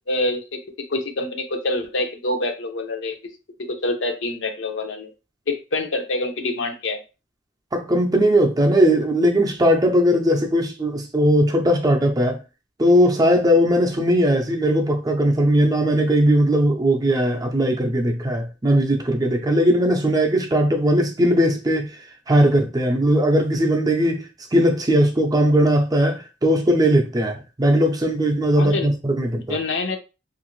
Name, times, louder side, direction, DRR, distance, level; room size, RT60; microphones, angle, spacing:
voice 1, 0.1-3.2 3.6-5.1 5.5-7.0 28.5-28.9 29.5-30.0, left 2 dB, 80° left, 0.6 m, -26 dB
voice 2, 7.7-12.4 12.8-21.9 22.3-24.3 24.5-29.6, equal, 20° right, 0.5 m, -19 dB
2.8 x 2.5 x 3.1 m
head